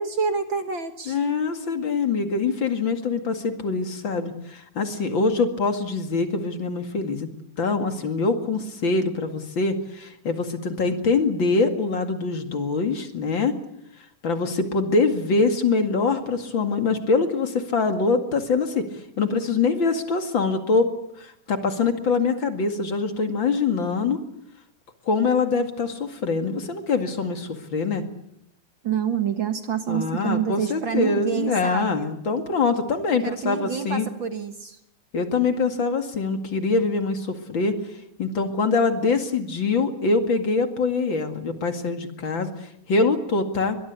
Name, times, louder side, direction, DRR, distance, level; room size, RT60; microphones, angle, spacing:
voice 1, 0.0-1.2 28.8-32.2 33.2-34.8, right 7 dB, 50° right, 8 dB, 1.7 m, -27 dB
voice 2, 1.1-7.3 7.6-13.5 14.2-18.8 19.2-20.9 21.2-24.2 25.1-28.0 29.9-34.1 35.1-37.7 38.2-42.5 42.9-43.8, left 4 dB, 40° left, 7 dB, 2.5 m, -24 dB
23.5 x 21.5 x 8.3 m, 0.77 s
omnidirectional pair, 3.6 m